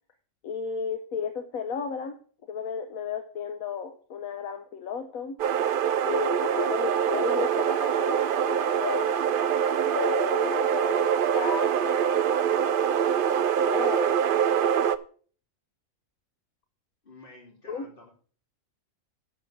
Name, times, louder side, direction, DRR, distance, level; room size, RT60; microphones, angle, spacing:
voice 1, 0.4-2.2 2.5-5.4 6.0-9.1 9.8-12.9 13.7-14.5 17.7-17.9, left 6 dB, 85° left, 7 dB, 1.3 m, -34 dB
sound 1, 5.4-15.0, right 8 dB, 65° right, 0.5 m, -24 dB
voice 2, 17.0-18.1, left 2 dB, 40° left, 0 dB, 3.0 m, -50 dB
10.5 x 5.3 x 7.1 m, 0.43 s
omnidirectional pair, 1.4 m